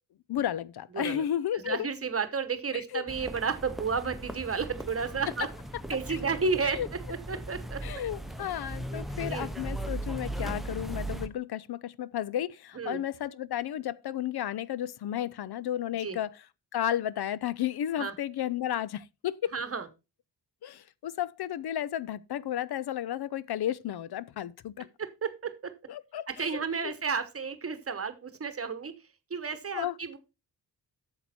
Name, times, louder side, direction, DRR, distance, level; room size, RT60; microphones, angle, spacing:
voice 1, 0.3-1.9 2.7-3.0 6.1-6.2 6.6-6.9 7.8-16.5 16.7-19.5 20.6-24.9 25.9-26.9 29.7-30.0, left 11 dB, 65° left, 0.5 m, -33 dB
voice 2, 1.5-5.5 5.9-6.8 7.3-7.8 9.2-9.5 12.7-13.0 16.0-16.2 18.0-18.1 19.5-19.9 25.0-25.7 26.3-28.9 29.3-30.2, right 5 dB, 35° right, 1.0 m, -32 dB
sound 1, 3.1-11.3, right 1 dB, ahead, 0.7 m, -38 dB
8.6 x 7.0 x 4.2 m
wide cardioid pair, 150°, 40 cm